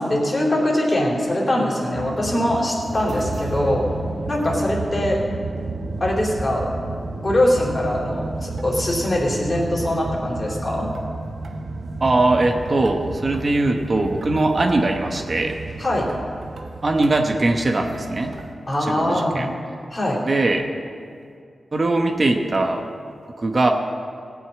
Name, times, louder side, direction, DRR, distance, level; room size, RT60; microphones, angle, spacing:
voice 1, 0.0-3.8 4.3-5.2 6.0-6.7 7.2-10.9 15.8-16.1 18.7-19.5 19.9-20.2, left 1 dB, 30° left, -3 dB, 3.5 m, -22 dB
sound 1, 1.9-18.5, right 3 dB, 75° right, 1.0 m, -32 dB
voice 2, 12.0-15.6 16.8-18.3 18.8-19.5 20.2-20.7 21.7-22.9 23.4-23.7, right 2 dB, 45° right, 4 dB, 1.0 m, -21 dB
17.5 x 6.3 x 8.8 m, 2.3 s
wide cardioid pair, 95°, 0 cm